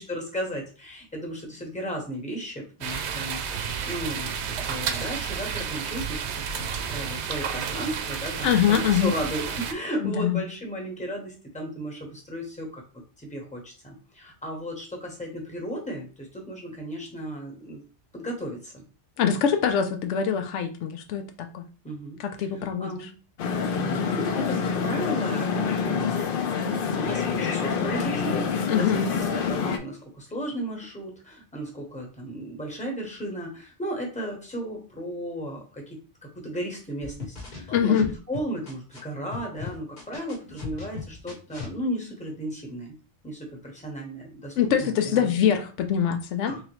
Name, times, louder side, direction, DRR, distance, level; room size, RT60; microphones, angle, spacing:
voice 1, 0.0-3.4 3.9-4.3 4.7-6.4 6.9-12.8 13.2-17.8 18.1-18.8 21.8-22.2 22.5-23.1 23.7-26.2 26.9-29.0 29.5-36.0 36.3-42.9 43.2-45.3 46.5-46.6, equal, 5° left, 0 dB, 1.0 m, -35 dB
sound 1, 2.8-9.7, right 7 dB, 70° right, 0.8 m, -31 dB
voice 2, 8.4-9.1 10.0-10.4 19.2-21.6 22.2-23.1 28.7-29.1 37.7-38.1 44.6-46.5, left 8 dB, 85° left, 7 dB, 0.9 m, -24 dB
sound 2, 23.4-29.8, left 6 dB, 60° left, 0.7 m, -27 dB
sound 3, 37.0-39.0 39.3-41.7, left 5 dB, 40° left, 1.0 m, -38 dB
3.7 x 3.0 x 3.1 m, 0.35 s
omnidirectional pair, 1.2 m